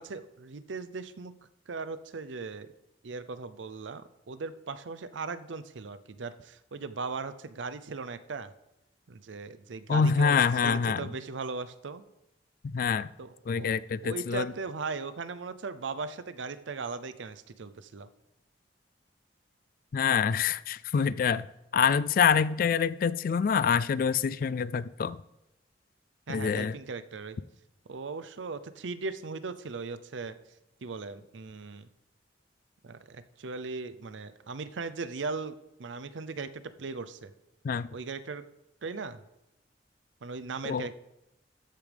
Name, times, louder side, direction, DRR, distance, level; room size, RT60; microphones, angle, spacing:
voice 1, 0.0-1.4 1.7-2.7 3.0-8.5 9.1-10.4 10.6-12.0 13.2-13.7 14.0-18.1 26.3-27.4 27.9-30.4 30.8-31.9 32.8-37.3 37.9-38.4 38.8-39.2 40.2-40.9, right 4 dB, 90° right, 13 dB, 0.6 m, -38 dB
voice 2, 9.9-11.1 12.7-13.1 13.5-14.5 19.9-21.5 21.7-25.2 26.3-26.8 37.6-37.9 40.6-40.9, left 6 dB, 50° left, 18 dB, 0.3 m, -26 dB
13.5 x 8.4 x 3.4 m, 0.90 s
head